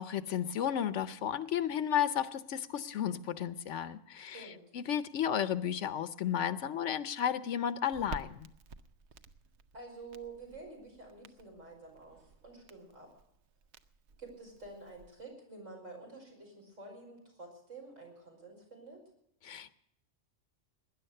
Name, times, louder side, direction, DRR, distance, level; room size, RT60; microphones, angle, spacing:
voice 1, 0.0-4.5 4.7-8.5 19.4-19.7, left 9 dB, 75° left, 14 dB, 1.1 m, -33 dB
voice 2, 4.3-4.7 9.7-13.1 14.2-19.0, right 3 dB, 85° right, 0 dB, 5.7 m, -49 dB
Crackle, 7.9-15.2, right 4 dB, 65° right, 1.1 m, -52 dB
19.5 x 10.5 x 6.6 m, 0.74 s
omnidirectional pair, 1.3 m